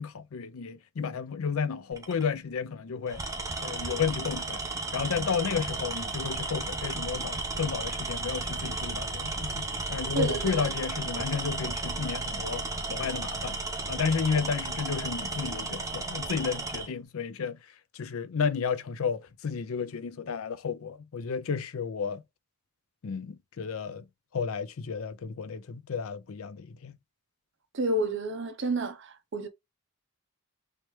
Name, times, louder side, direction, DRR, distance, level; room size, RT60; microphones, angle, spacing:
voice 1, 0.0-3.2 3.6-4.6 4.9-12.6 12.9-13.6 13.9-17.6 17.9-22.2 23.0-24.0 24.3-27.0, left 6 dB, 70° left, 0.5 m, -32 dB
Tools, 1.9-2.2 3.1-16.9, right 3 dB, 15° right, 0.6 m, -34 dB
voice 2, 10.1-10.6 27.7-29.5, right 1 dB, 55° right, 0.6 m, -30 dB
3.2 x 3.0 x 3.1 m
head